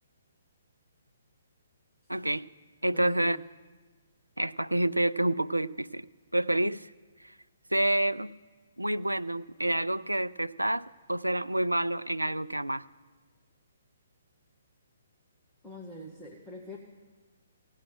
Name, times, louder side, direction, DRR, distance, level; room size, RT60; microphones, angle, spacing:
voice 1, 2.1-2.5 2.8-3.4 4.4-6.1 6.3-6.9 7.2-7.3 7.7-8.3 8.8-12.8, right 1 dB, 85° right, 14 dB, 0.4 m, -28 dB
voice 2, 2.9-3.4 15.6-16.8, left 1 dB, 5° left, -4 dB, 1.5 m, -45 dB
16.0 x 7.5 x 8.9 m, 1.4 s
figure-of-eight pair, 130°, 0 cm